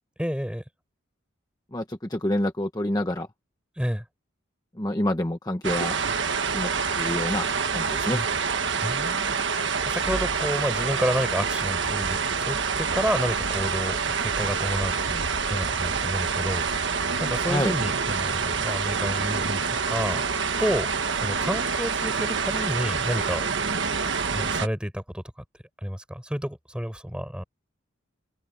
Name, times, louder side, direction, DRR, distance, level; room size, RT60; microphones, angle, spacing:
voice 1, 0.2-0.6 3.8-4.0 8.1-8.3 8.8-15.2 15.5-19.6 19.9-20.2 20.6-20.9 21.2-23.5 24.1-25.2 25.8-27.4, equal, 5° right, 7.2 m, -30 dB
voice 2, 1.7-3.3 4.8-6.0 6.5-6.7 7.0-8.2 17.5-17.7, left 1 dB, 20° left, 1.1 m, -27 dB
sound 1, 5.6-24.7, right 5 dB, 55° right, 1.5 m, -27 dB
head